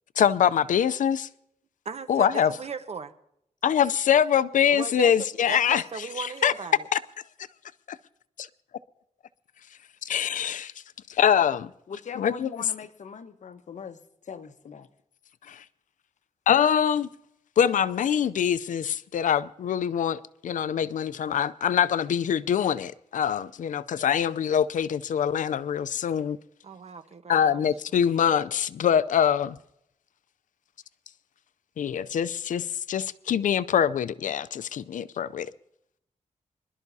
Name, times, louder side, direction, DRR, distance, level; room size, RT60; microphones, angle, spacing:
voice 1, 0.2-1.3 2.1-2.5 3.6-5.8 6.2-6.5 6.9-7.0 10.0-10.7 11.1-11.7 12.2-12.5 15.5-15.6 16.5-17.1 17.6-26.4 27.3-29.6 31.8-35.5, left 8 dB, 90° left, 0.5 m, -24 dB
voice 2, 1.8-3.1 4.7-6.9 26.6-27.7, right 5 dB, 55° right, 1.1 m, -37 dB
voice 3, 11.9-14.0 14.2-14.9, left 6 dB, 70° left, 1.0 m, -41 dB
25.5 x 12.0 x 2.7 m
wide cardioid pair, 100°, 13 cm